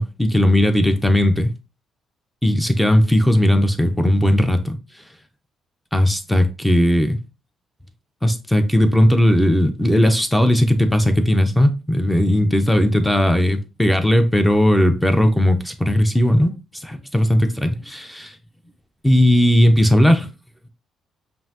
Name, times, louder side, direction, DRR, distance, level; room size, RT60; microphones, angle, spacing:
voice 1, 0.0-1.5 2.4-4.8 5.9-7.2 8.2-16.5 16.8-18.3 19.0-20.3, left 1 dB, 5° left, 0.7 m, -17 dB
5.4 x 2.6 x 2.8 m
cardioid pair, 90°, 0 cm